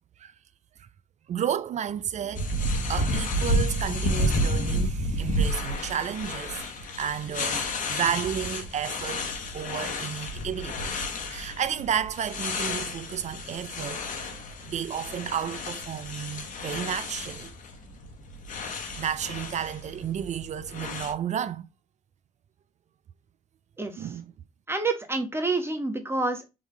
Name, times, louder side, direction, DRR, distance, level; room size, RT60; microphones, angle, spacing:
voice 1, 1.3-2.5 2.9-9.2 9.5-10.8 11.3-17.5 19.0-21.7 24.0-24.3, right 9 dB, 45° right, 0.4 m, -32 dB
sound 1, 2.3-21.1, left 1 dB, 55° left, 1.1 m, -31 dB
voice 2, 24.7-26.5, right 3 dB, 15° right, 1.3 m, -28 dB
4.0 x 3.4 x 3.2 m
hypercardioid pair, 60°, 16 cm